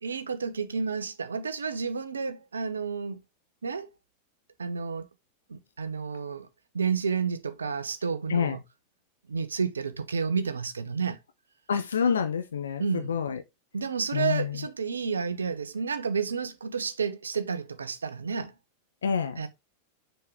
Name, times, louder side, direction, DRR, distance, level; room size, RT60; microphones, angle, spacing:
voice 1, 0.0-3.2 3.6-3.9 4.6-5.1 5.5-6.5 6.7-8.6 9.3-11.2 12.8-13.1 13.7-18.5 19.4-19.5, right 5 dB, 75° right, 0.8 m, -30 dB
voice 2, 11.7-13.4 14.1-14.6 19.0-19.4, left 7 dB, 70° left, 0.7 m, -27 dB
6.7 x 4.5 x 3.5 m
figure-of-eight pair, 90°, 0 cm